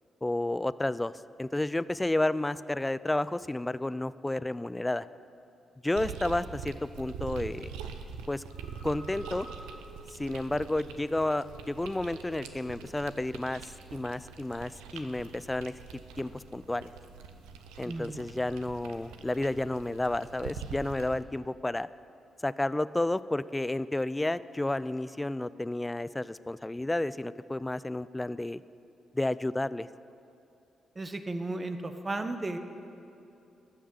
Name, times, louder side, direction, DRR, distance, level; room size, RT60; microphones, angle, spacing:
voice 1, 0.2-1.1 1.4-5.1 5.8-7.7 8.3-8.4 8.8-9.5 10.1-15.7 16.2-16.9 17.8-21.9 22.4-28.6 29.1-29.9, left 1 dB, 15° left, 17 dB, 0.4 m, -31 dB
sound 1, 6.0-21.2, right 6 dB, 85° right, 0.6 m, -44 dB
Telephone, 8.5-11.5 11.8-12.5 12.8-13.1, equal, 75° left, 1.7 m, -51 dB
voice 2, 17.8-18.2 31.0-32.6, right 2 dB, 30° right, 8 dB, 1.0 m, -34 dB
13.5 x 6.5 x 7.1 m, 2.8 s
hypercardioid pair, 45°, 0 cm